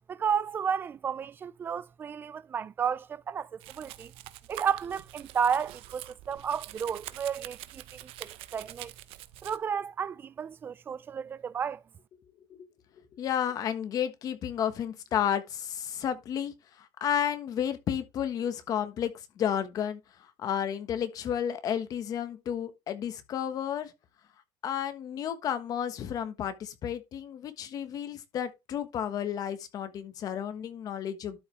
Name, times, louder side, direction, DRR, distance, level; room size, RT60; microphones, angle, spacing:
voice 1, 0.1-4.1 4.5-8.9 9.4-11.8, right 7 dB, 20° right, 0.3 m, -32 dB
Domestic sounds home sounds, 3.6-9.6, right 15 dB, 65° right, 0.8 m, -45 dB
voice 2, 13.1-23.9 24.6-31.4, left 9 dB, 35° left, 1.3 m, -32 dB
12.5 x 5.0 x 3.4 m
cardioid pair, 180°, 10 cm